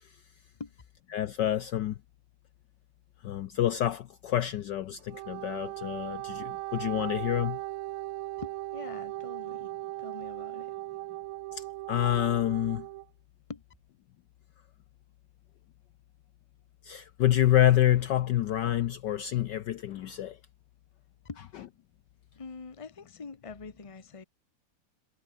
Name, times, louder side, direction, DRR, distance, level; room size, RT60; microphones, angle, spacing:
voice 1, 1.1-1.9 3.2-7.6 11.6-12.8 16.9-20.4, left 12 dB, 65° left, 1.2 m, -27 dB
Wind instrument woodwind instrument, 5.0-13.1, right 18 dB, 80° right, 1.4 m, -38 dB
voice 2, 8.4-9.7 10.0-10.7 13.5-13.6 21.2-21.5 22.4-24.2, left 4 dB, 20° left, 1.1 m, -44 dB
omnidirectional pair, 2.4 m